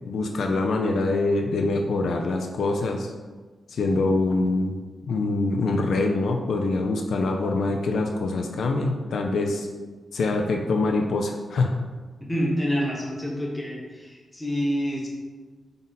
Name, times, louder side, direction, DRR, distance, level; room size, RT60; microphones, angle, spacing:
voice 1, 0.1-3.1 3.7-4.8 5.1-9.7 10.1-11.8, left 3 dB, 80° left, 2 dB, 0.3 m, -24 dB
voice 2, 12.3-15.1, equal, 10° left, -3 dB, 0.9 m, -27 dB
3.8 x 2.1 x 3.9 m, 1.3 s
cardioid pair, 80°, 0 cm